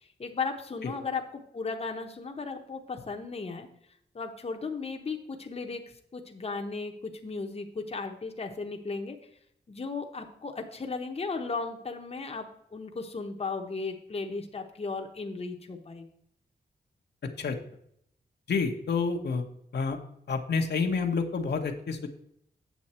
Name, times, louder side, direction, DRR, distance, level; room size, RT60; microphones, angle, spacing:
voice 1, 0.0-3.7 4.1-5.8 6.1-9.2 9.7-12.5 12.7-16.1, left 4 dB, 35° left, 4 dB, 0.9 m, -35 dB
voice 2, 18.5-19.4 19.7-20.0 20.3-22.1, left 5 dB, 70° left, 3 dB, 1.0 m, -28 dB
8.2 x 7.2 x 4.3 m, 0.72 s
wide cardioid pair, 105°, 18 cm